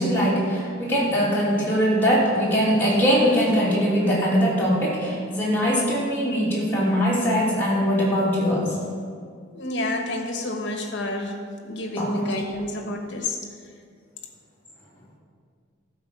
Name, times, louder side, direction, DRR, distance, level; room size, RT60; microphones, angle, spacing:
voice 1, 0.0-8.8 12.0-12.2, equal, 10° left, -8 dB, 2.7 m, -21 dB
voice 2, 9.5-11.4 11.6-13.4, left 1 dB, 55° left, 3 dB, 1.2 m, -29 dB
12.0 x 4.9 x 6.8 m, 2.1 s
head